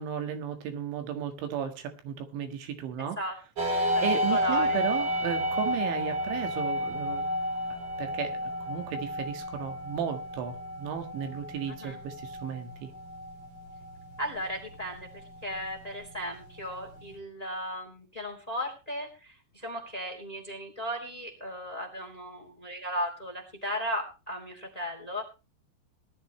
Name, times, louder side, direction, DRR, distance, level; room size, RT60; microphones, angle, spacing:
voice 1, 0.0-3.2 4.0-7.3 8.0-12.9, right 9 dB, 85° right, 6 dB, 4.1 m, -34 dB
voice 2, 3.0-3.7 3.9-4.8 11.7-12.0 14.2-15.1 15.4-25.2, equal, 10° left, 4 dB, 2.1 m, -36 dB
sound 1, 3.6-17.2, equal, 35° right, 2.8 m, -32 dB
19.0 x 12.0 x 3.3 m, 0.31 s
omnidirectional pair, 5.2 m